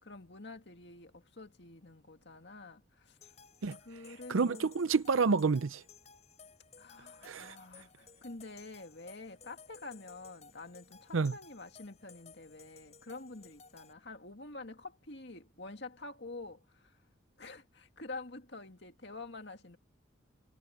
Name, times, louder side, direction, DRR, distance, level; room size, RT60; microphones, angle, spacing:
voice 1, 0.0-3.3 3.8-4.7 6.8-17.0 17.4-19.8, left 3 dB, 55° left, 2.3 m, -48 dB
sound 1, 3.2-13.9, left 5 dB, 35° left, 6.6 m, -57 dB
voice 2, 4.1-5.8 7.2-7.6 11.1-11.3, right 4 dB, 80° right, 0.6 m, -29 dB
head